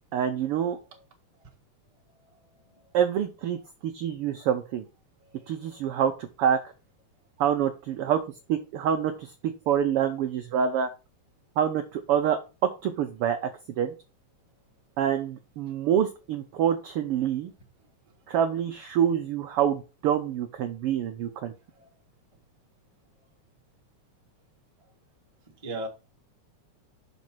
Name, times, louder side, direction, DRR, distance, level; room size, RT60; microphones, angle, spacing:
voice 1, 0.1-0.8 2.9-4.8 5.5-6.1 6.4-6.6 7.4-8.2 8.5-9.3 9.7-10.9 11.6-12.4 12.8-13.5 13.8-13.9 15.0-17.5 18.3-21.5, right 9 dB, 85° right, 1.2 m, -26 dB
voice 2, 2.2-2.9 5.2-6.0 18.3-18.4 21.7-21.9 25.6-25.9, right 1 dB, 25° right, 0.7 m, -42 dB
6.2 x 5.3 x 6.0 m
omnidirectional pair, 3.5 m